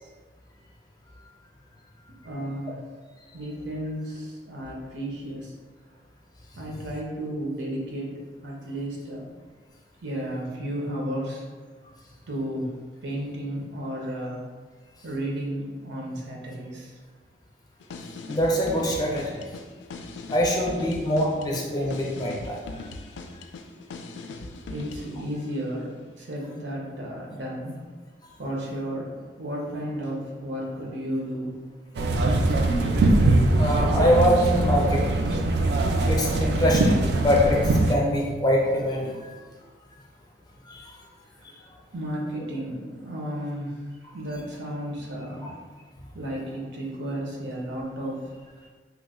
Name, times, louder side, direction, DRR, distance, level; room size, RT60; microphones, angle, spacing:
voice 1, 2.2-2.8 3.3-5.5 6.6-9.2 10.0-11.4 12.3-12.7 13.0-14.4 15.0-16.9 20.8-20.9 24.3-27.8 28.4-31.5 33.0-33.1 34.2-34.3 41.9-43.8 44.1-45.6 46.1-48.2, right 1 dB, 85° right, -2 dB, 0.7 m, -33 dB
sound 1, 17.8-25.2, left 3 dB, 90° left, 0.3 m, -40 dB
voice 2, 18.3-19.4 20.3-22.8 32.4-32.5 33.5-35.2 36.0-39.3 40.7-40.9 41.4-41.5 45.4-45.5, equal, 20° left, -2 dB, 0.5 m, -24 dB
sound 2, 31.9-38.0, right 2 dB, 65° right, 0.3 m, -22 dB
3.0 x 2.1 x 3.6 m, 1.4 s
head